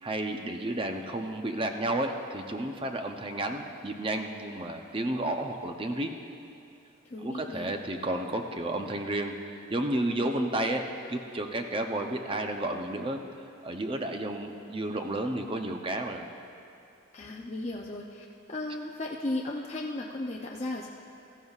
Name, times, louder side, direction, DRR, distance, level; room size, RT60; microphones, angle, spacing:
voice 1, 0.0-6.2 7.2-13.2 13.6-16.2, right 1 dB, 25° right, 4 dB, 0.6 m, -32 dB
voice 2, 7.1-7.7 17.1-20.9, left 2 dB, 30° left, -2 dB, 0.5 m, -35 dB
16.0 x 14.0 x 2.4 m, 2.8 s
head